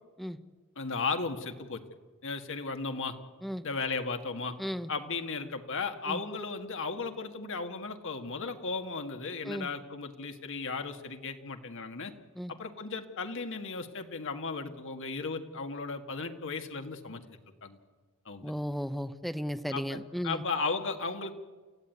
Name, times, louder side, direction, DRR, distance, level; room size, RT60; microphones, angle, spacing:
voice 1, 0.8-1.8 2.2-3.2 3.6-4.5 4.9-12.1 12.5-17.8 18.3-18.5 19.7-20.0 20.2-21.3, left 4 dB, 60° left, 6 dB, 2.0 m, -35 dB
voice 2, 4.6-4.9 6.1-6.2 9.4-9.7 12.4-12.5 18.4-20.4, equal, ahead, 10 dB, 0.8 m, -35 dB
28.5 x 15.5 x 9.5 m, 1.4 s
head